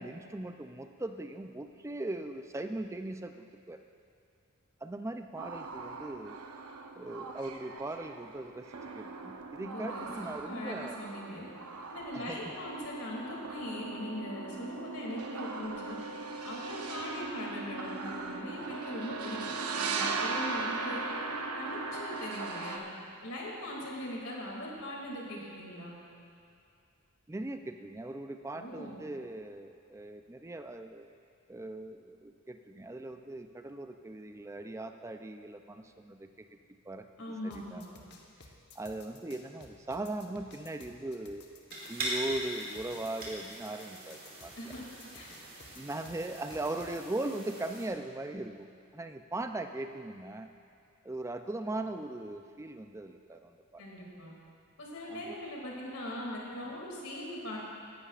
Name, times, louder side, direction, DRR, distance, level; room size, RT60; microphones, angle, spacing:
voice 1, 0.0-3.8 4.8-6.4 7.0-11.0 12.1-12.5 27.3-31.1 31.5-36.3 36.9-37.1 37.4-37.8 38.8-41.4 41.9-44.7 45.8-48.7 48.9-50.5 51.0-53.8 55.1-55.4, right 2 dB, 15° right, 7 dB, 0.3 m, -39 dB
sound 1, 5.4-22.8, right 3 dB, 90° right, 0.8 m, -39 dB
voice 2, 9.6-10.1 10.4-11.5 11.9-16.0 16.4-19.4 19.7-21.0 21.6-22.9 23.2-26.0 28.5-29.0 37.2-37.9 44.6-44.9 45.1-45.3 53.8-54.3 54.8-57.6, left 1 dB, 75° left, -3 dB, 2.5 m, -40 dB
sound 2, 37.5-47.0, left 3 dB, 50° left, 1.0 m, -54 dB
sound 3, 41.7-47.9, right 1 dB, 40° right, 2.3 m, -41 dB
16.5 x 11.0 x 2.4 m, 2.4 s
head